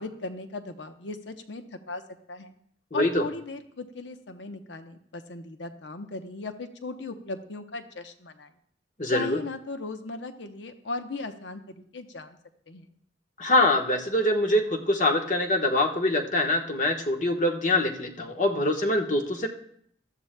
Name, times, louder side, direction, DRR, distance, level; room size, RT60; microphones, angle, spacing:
voice 1, 0.0-2.0 2.3-2.5 2.9-8.5 9.1-12.4 12.7-12.9, left 3 dB, 80° left, 7 dB, 0.9 m, -37 dB
voice 2, 2.9-3.2 9.0-9.4 13.4-19.5, left 1 dB, 40° left, 3 dB, 1.2 m, -24 dB
18.5 x 13.0 x 2.2 m, 0.67 s
head